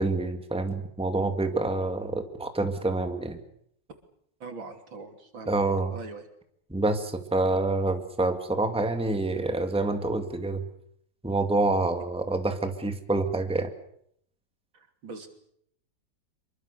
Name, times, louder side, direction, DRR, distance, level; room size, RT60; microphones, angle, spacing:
voice 1, 0.0-3.4 5.5-5.9 6.7-10.6 11.2-13.7, right 2 dB, 5° right, 6 dB, 2.1 m, -27 dB
voice 2, 4.4-5.6 5.9-6.3 14.7-15.3, right 4 dB, 75° right, 6 dB, 3.8 m, -42 dB
26.5 x 23.5 x 6.9 m, 0.69 s
omnidirectional pair, 2.1 m